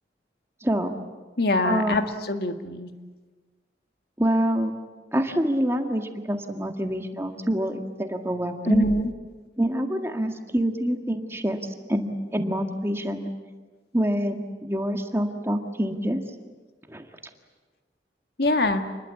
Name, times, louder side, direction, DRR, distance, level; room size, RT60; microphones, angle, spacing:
voice 1, 0.6-0.9 1.6-2.0 4.2-4.7 5.1-8.9 9.6-11.6 11.9-13.3 13.9-16.2 16.9-17.1, equal, 15° right, 5 dB, 1.9 m, -26 dB
voice 2, 1.4-2.9 8.7-9.1 18.4-18.8, left 1 dB, 60° left, 6 dB, 2.0 m, -24 dB
28.5 x 21.5 x 8.6 m, 1.3 s
head